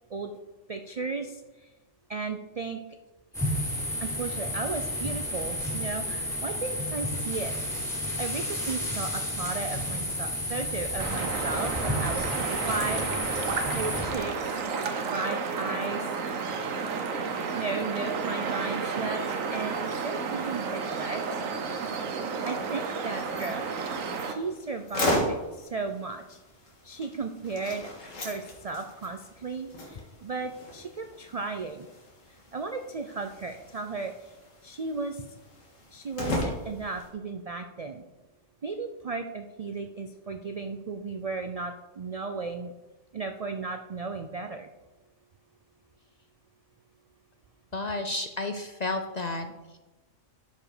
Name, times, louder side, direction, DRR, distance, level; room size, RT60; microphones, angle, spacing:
voice 1, 0.7-1.4 2.1-2.8 4.0-7.5 8.2-13.1 13.7-14.3 15.1-16.1 17.5-19.8 20.0-21.4 22.5-23.7 24.2-26.4 26.8-31.9 32.5-34.1 34.6-35.2 35.9-38.0 38.6-42.7 43.1-44.7, right 4 dB, 65° right, 7 dB, 0.3 m, -35 dB
sound 1, 3.3-14.1, left 1 dB, ahead, 2.5 m, -31 dB
sound 2, 11.0-24.3, right 5 dB, 85° right, 1.3 m, -32 dB
sound 3, 23.2-37.1, left 1 dB, 80° left, 2.1 m, -37 dB
voice 2, 47.7-49.8, left 2 dB, 45° left, 6 dB, 0.5 m, -32 dB
12.0 x 5.0 x 4.8 m, 1.1 s
omnidirectional pair, 1.3 m